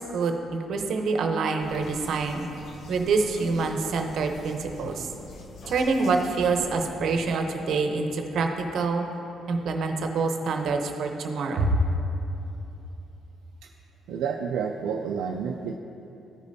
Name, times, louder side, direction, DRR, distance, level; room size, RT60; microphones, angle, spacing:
voice 1, 0.0-2.5 2.9-5.1 5.7-9.1 9.5-11.8, right 4 dB, 70° right, 4 dB, 0.7 m, -26 dB
sound 1, 1.6-7.3, left 2 dB, 65° left, 0.8 m, -44 dB
voice 2, 14.1-15.8, right 6 dB, 85° right, 2 dB, 0.3 m, -29 dB
14.0 x 5.1 x 2.7 m, 2.9 s
cardioid pair, 90°, 0 cm